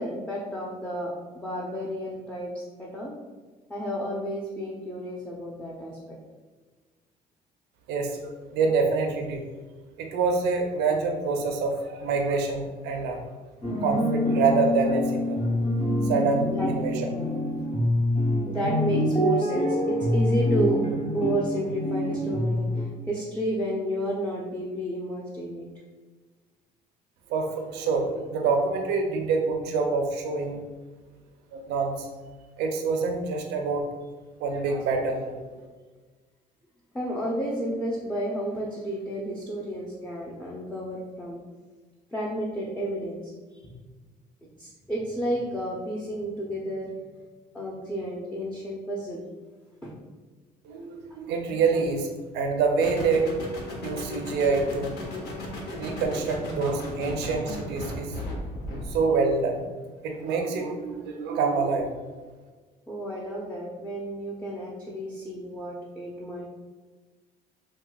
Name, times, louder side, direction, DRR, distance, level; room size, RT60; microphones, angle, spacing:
voice 1, 0.0-3.1 3.7-6.2 16.4-16.7 17.1-17.3 18.4-20.8 21.1-25.7 36.9-41.4 42.1-43.7 44.4-46.9 47.5-49.2 49.8-49.9 55.2-55.3 62.9-66.4, right 1 dB, 5° left, -4 dB, 0.5 m, -31 dB
voice 2, 7.9-9.4 10.0-13.2 13.8-15.7 16.0-17.1 27.3-30.6 31.5-32.1 32.6-33.9 34.4-35.5 50.6-52.1 52.3-53.3 53.8-54.9 55.8-58.2 58.9-59.6 60.0-61.9, right 4 dB, 85° right, 3 dB, 0.6 m, -26 dB
sound 1, 13.6-22.8, left 1 dB, 40° left, 0.8 m, -26 dB
sound 2, 52.8-59.1, left 1 dB, 75° left, 0.8 m, -35 dB
4.6 x 2.2 x 2.3 m, 1.4 s
cardioid pair, 110°, 17 cm